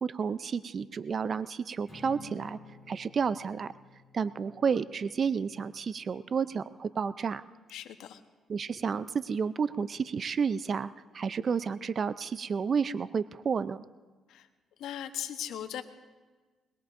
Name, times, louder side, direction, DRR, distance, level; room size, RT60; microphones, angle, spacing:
voice 1, 0.0-2.6 2.9-3.7 4.1-7.4 8.5-13.8, right 6 dB, 45° right, 15 dB, 0.4 m, -31 dB
Acoustic guitar / Strum, 1.9-6.3, left 2 dB, ahead, 4.2 m, -53 dB
voice 2, 7.7-8.2 14.3-14.5 14.8-15.8, left 10 dB, 85° left, 8 dB, 0.9 m, -38 dB
21.5 x 21.0 x 2.6 m, 1.3 s
cardioid pair, 90°, 0 cm